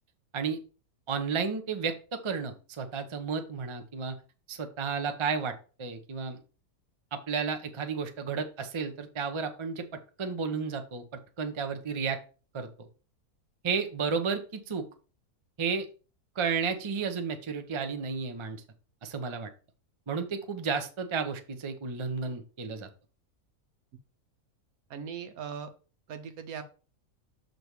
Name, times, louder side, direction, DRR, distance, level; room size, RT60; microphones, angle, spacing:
voice 1, 1.1-4.2 4.5-5.5 5.8-6.4 7.1-9.8 10.2-11.0 11.4-12.2 12.5-12.9 13.6-14.8 15.6-15.9 16.4-18.6 19.0-19.5 20.1-22.9, right 5 dB, 30° right, 7 dB, 0.5 m, -32 dB
voice 2, 24.9-25.7 26.1-26.6, right 7 dB, 70° right, 9 dB, 1.3 m, -39 dB
6.7 x 3.9 x 4.7 m, 0.36 s
omnidirectional pair, 1.6 m